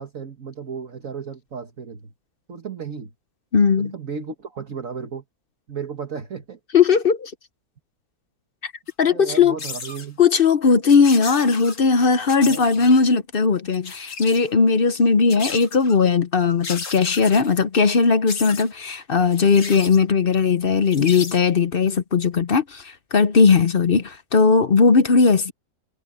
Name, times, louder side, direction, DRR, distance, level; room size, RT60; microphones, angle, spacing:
voice 1, 0.0-2.1 2.5-3.1 3.8-5.2 5.7-6.6 9.0-10.2 12.4-12.7, right 6 dB, 55° right, 2.0 m, -34 dB
voice 2, 3.5-3.9 6.7-7.3 8.6-8.7 9.0-9.6 10.2-25.5, left 5 dB, 45° left, 0.8 m, -18 dB
sound 1, 8.9-9.0 9.6-10.1 10.9-11.8 12.3-13.0 13.7-14.5 15.3-16.0 16.6-17.5 18.3-18.7 19.3-20.0 20.8-21.4, left 4 dB, 70° left, 2.6 m, -34 dB
omnidirectional pair, 1.7 m